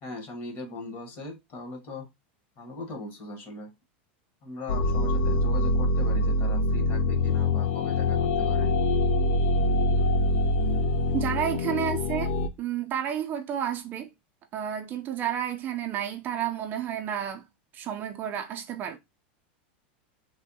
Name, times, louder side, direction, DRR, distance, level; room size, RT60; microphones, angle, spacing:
voice 1, 0.0-2.1 2.6-3.7 4.4-8.7 11.1-11.4, left 2 dB, 40° left, 1.1 m, -39 dB
sound 1, 4.7-12.5, left 2 dB, 80° left, 0.4 m, -24 dB
voice 2, 11.1-12.3 12.6-14.1 14.5-17.5 17.7-19.0, right 9 dB, 35° right, 0.4 m, -31 dB
3.3 x 2.1 x 2.7 m
supercardioid pair, 125°, 6 cm